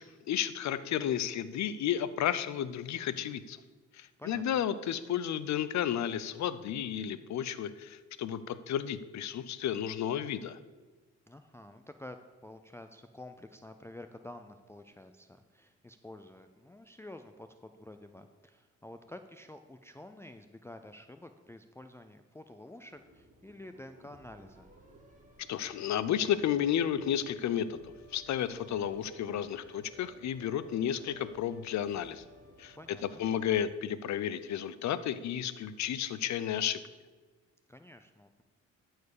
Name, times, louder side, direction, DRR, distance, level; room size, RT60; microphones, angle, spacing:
voice 1, 0.0-3.6 3.9-10.6 25.5-27.8 28.1-32.2 32.6-32.8 33.2-36.8, left 10 dB, 65° left, 14 dB, 0.7 m, -32 dB
voice 2, 4.2-4.6 11.3-12.2 12.4-24.7 32.7-33.2 37.7-38.4, left 1 dB, 10° left, 7 dB, 0.5 m, -50 dB
sound 1, 22.8-33.6, right 1 dB, 25° right, 2.1 m, -57 dB
13.5 x 4.6 x 6.6 m, 1.3 s
cardioid pair, 90°, 30 cm